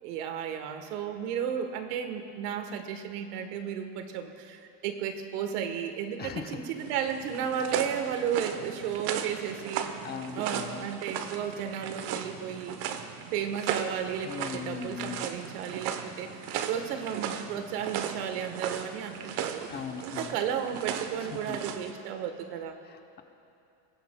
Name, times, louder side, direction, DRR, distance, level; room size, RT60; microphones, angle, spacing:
voice 1, 0.0-9.9 10.3-12.8 13.3-19.7 20.0-22.8, right 8 dB, 85° right, 7 dB, 1.4 m, -33 dB
voice 2, 6.2-6.6 10.0-10.9 14.2-15.3 19.7-20.4 21.5-21.6 22.8-23.2, left 7 dB, 20° left, 5 dB, 0.7 m, -39 dB
sound 1, 6.8-21.9, right 8 dB, 55° right, 1.0 m, -37 dB
21.0 x 16.0 x 2.3 m, 2.9 s
supercardioid pair, 135°, 45 cm